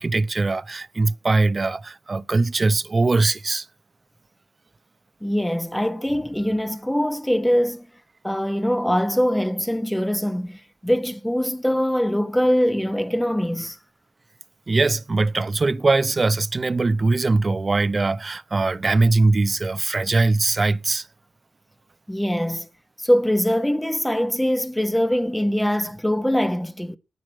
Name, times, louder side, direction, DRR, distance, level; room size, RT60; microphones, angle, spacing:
voice 1, 0.0-3.7 14.7-21.1, right 3 dB, 40° right, 0.9 m, -21 dB
voice 2, 5.2-7.9 8.2-13.8 22.1-22.7 23.0-27.0, equal, 5° left, 1.2 m, -22 dB
9.3 x 9.2 x 9.0 m
supercardioid pair, 45°, 0 cm